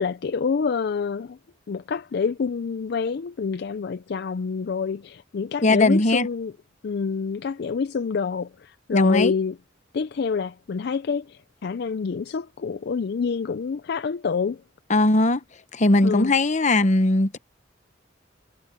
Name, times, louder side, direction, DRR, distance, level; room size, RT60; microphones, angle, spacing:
voice 1, 0.0-1.4 1.7-6.5 6.8-9.5 9.9-14.6 16.0-16.3, left 5 dB, 55° left, 0.4 m, -27 dB
voice 2, 5.6-6.3 8.9-9.4 14.9-15.4 15.7-17.4, left 2 dB, 40° left, 0.9 m, -19 dB
head